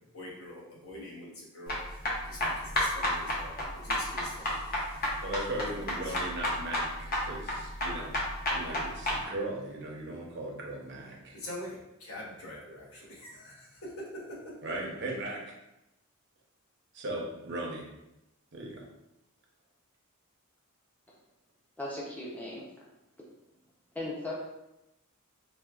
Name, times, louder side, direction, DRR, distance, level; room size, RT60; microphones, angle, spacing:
voice 1, 0.1-1.8 2.3-3.5 3.8-4.6 5.7-5.8 11.3-13.9, left 1 dB, 65° left, -4 dB, 1.0 m, -44 dB
sound 1, 1.7-9.2, left 1 dB, 40° left, 0.7 m, -31 dB
voice 2, 5.2-8.2 8.5-11.4 14.6-15.5 16.9-17.8 18.5-18.9, right 1 dB, 55° right, -1 dB, 0.7 m, -37 dB
voice 3, 21.8-22.6 23.9-24.3, left 2 dB, 5° left, -5 dB, 0.5 m, -37 dB
4.2 x 2.2 x 2.3 m, 0.91 s
head